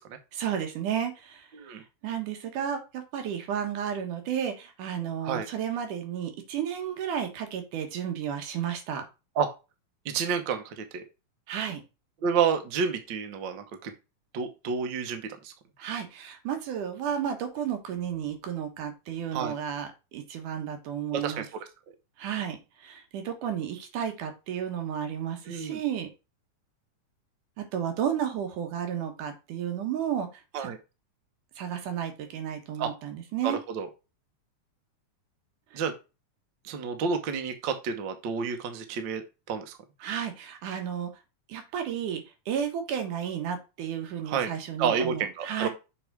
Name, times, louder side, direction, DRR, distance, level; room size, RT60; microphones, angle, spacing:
voice 1, 0.3-9.0 11.5-11.8 15.8-21.5 22.2-26.1 27.6-30.7 31.6-33.6 35.7-35.8 40.0-41.1 41.5-45.7, right 9 dB, 90° right, 5 dB, 2.8 m, -32 dB
voice 2, 10.0-11.0 12.2-13.9 14.3-15.5 19.3-19.5 21.1-21.4 25.5-25.8 30.5-30.8 32.8-32.9 33.4-33.9 35.7-35.9 36.6-39.2 39.5-39.7 44.3-44.5 44.8-45.7, right 6 dB, 65° right, 7 dB, 1.1 m, -29 dB
6.9 x 3.8 x 4.6 m, 0.28 s
omnidirectional pair, 3.5 m